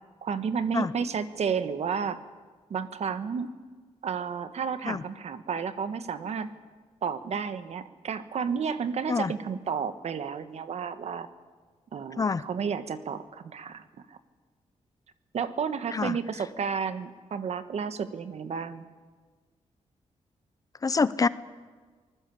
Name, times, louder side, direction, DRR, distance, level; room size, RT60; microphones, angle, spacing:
voice 1, 0.2-2.2 2.7-3.5 4.0-6.5 7.0-11.3 11.9-14.2 15.3-18.9, right 6 dB, 60° right, 11 dB, 1.4 m, -32 dB
voice 2, 20.8-21.3, left 4 dB, 30° left, 16 dB, 0.7 m, -26 dB
24.5 x 20.0 x 8.4 m, 1.5 s
wide cardioid pair, 150°, 12 cm